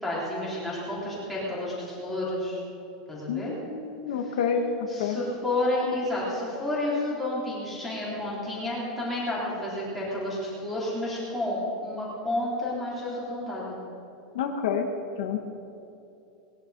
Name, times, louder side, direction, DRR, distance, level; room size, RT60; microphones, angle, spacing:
voice 1, 0.0-2.6 3.1-3.5 4.9-13.8, left 1 dB, ahead, -9 dB, 3.9 m, -30 dB
voice 2, 3.3-5.2 14.3-14.9 15.2-15.5, left 6 dB, 70° left, 4 dB, 1.3 m, -29 dB
19.5 x 11.0 x 5.2 m, 2.8 s
supercardioid pair, 180°, 4 cm